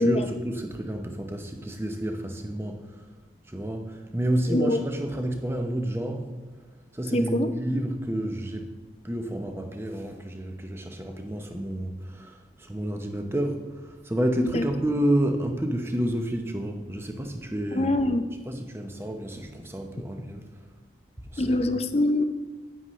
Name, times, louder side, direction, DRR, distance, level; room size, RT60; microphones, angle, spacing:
voice 1, 0.0-2.9 3.4-6.3 6.9-8.7 9.0-17.9 18.5-20.4 21.3-21.6, right 1 dB, 15° right, 4 dB, 0.8 m, -30 dB
voice 2, 4.5-4.8 7.1-7.5 14.5-14.7 17.7-18.2 21.4-22.2, left 1 dB, 35° left, 9 dB, 0.5 m, -24 dB
9.6 x 9.5 x 3.2 m, 1.3 s
head